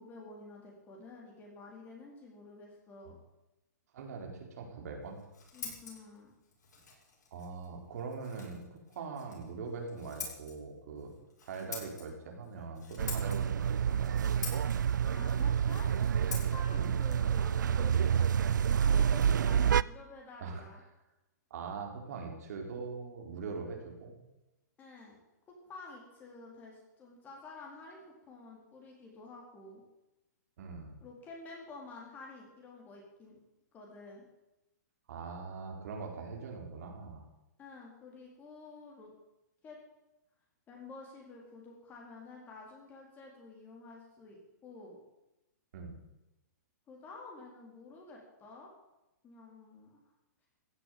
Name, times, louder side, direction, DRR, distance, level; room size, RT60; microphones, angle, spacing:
voice 1, 0.0-3.2 5.5-6.3 15.1-15.9 16.5-18.1 18.9-20.8 24.8-25.2 25.5-29.8 31.0-33.4 33.7-34.2 37.6-39.1 39.6-39.8 40.7-44.4 44.6-45.0 46.9-48.7 49.2-50.0, left 3 dB, 20° left, -1 dB, 4.0 m, -50 dB
voice 2, 3.9-5.2 7.3-11.1 11.4-13.5 13.9-14.4 16.7-16.9 20.4-20.6 21.5-24.2 30.6-30.9 35.1-37.2 45.7-46.0, right 4 dB, 60° right, 3 dB, 4.3 m, -42 dB
Scissors, 5.0-18.6, left 5 dB, 70° left, 7.3 m, -48 dB
sound 1, 13.0-19.8, right 8 dB, 90° right, 0.4 m, -28 dB
15.5 x 8.0 x 9.3 m, 0.96 s
hypercardioid pair, 150°, 10 cm